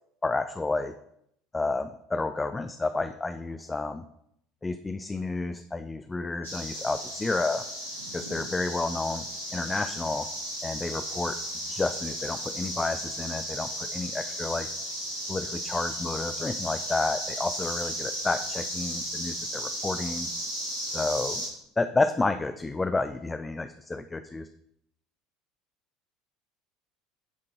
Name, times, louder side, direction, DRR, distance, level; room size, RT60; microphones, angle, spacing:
voice 1, 0.2-0.9 1.5-4.1 4.6-7.6 8.1-9.3 9.5-10.3 10.6-14.7 15.3-20.3 20.9-21.5 21.8-24.5, left 3 dB, 15° left, 9 dB, 0.4 m, -30 dB
sound 1, 6.4-21.5, equal, 85° right, 1.9 m, -35 dB
10.5 x 3.7 x 4.4 m, 0.73 s
figure-of-eight pair, 65°, 0 cm